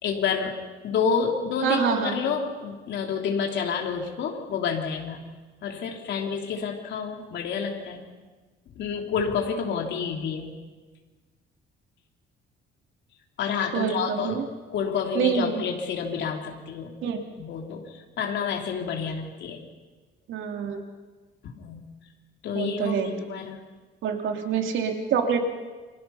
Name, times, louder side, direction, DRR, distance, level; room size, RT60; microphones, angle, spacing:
voice 1, 0.0-0.6 0.8-5.3 5.6-8.0 8.8-10.6 13.4-17.0 17.4-19.6 21.5-21.9 22.4-23.6, left 6 dB, 65° left, 2 dB, 3.1 m, -29 dB
voice 2, 1.6-2.2 13.7-14.5 15.1-15.6 17.0-17.2 20.3-20.8 22.5-23.2 24.0-25.4, right 7 dB, 75° right, 3 dB, 3.1 m, -26 dB
29.5 x 24.0 x 5.7 m, 1.3 s
cardioid pair, 155°, 20 cm